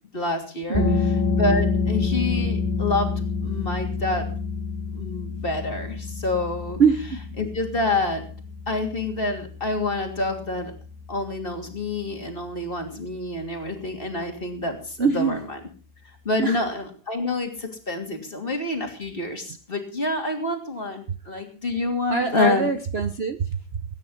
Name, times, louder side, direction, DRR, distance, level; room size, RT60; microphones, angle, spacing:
voice 1, 0.1-3.1 3.4-4.3 4.9-6.8 7.4-8.2 8.7-10.7 11.1-15.6 16.2-22.7, left 2 dB, 35° left, 3 dB, 3.1 m, -27 dB
sound 1, 0.7-12.1, left 4 dB, 10° left, 3.9 m, -28 dB
voice 2, 0.7-1.1 6.8-7.2 15.0-15.4 16.4-16.6 22.1-23.8, right 5 dB, 45° right, 10 dB, 0.9 m, -23 dB
19.5 x 10.0 x 5.5 m, 0.38 s
omnidirectional pair, 1.8 m